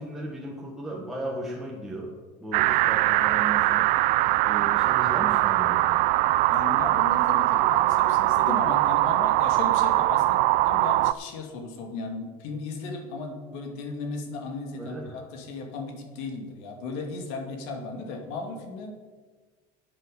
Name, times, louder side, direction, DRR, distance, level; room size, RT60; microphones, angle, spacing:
voice 1, 0.0-3.9 4.4-5.9 14.7-15.2, right 1 dB, ahead, -3 dB, 1.3 m, -36 dB
sound 1, 2.5-11.1, right 17 dB, 55° right, 0.4 m, -22 dB
voice 2, 6.5-18.9, left 3 dB, 75° left, 3 dB, 2.4 m, -35 dB
8.9 x 8.7 x 7.0 m, 1.4 s
cardioid pair, 150°, 17 cm